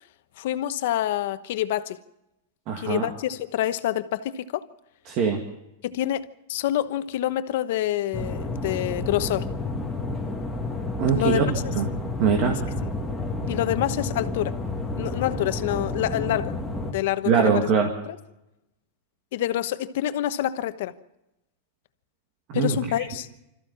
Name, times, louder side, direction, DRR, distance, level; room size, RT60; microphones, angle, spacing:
voice 1, 0.4-2.0 2.8-4.6 5.8-9.5 11.1-11.4 12.7-12.8 13.5-14.5 15.0-16.6 16.8-17.7 18.1-18.2 19.3-20.9 22.5-23.3, left 13 dB, 60° left, 1.1 m, -27 dB
voice 2, 2.7-3.1 5.1-5.4 11.0-11.9 12.2-12.6 17.3-17.9 22.5-23.0, right 6 dB, 40° right, 2.1 m, -23 dB
sound 1, 8.1-16.9, left 2 dB, ahead, 2.0 m, -30 dB
25.5 x 14.5 x 7.1 m
supercardioid pair, 155°, 0 cm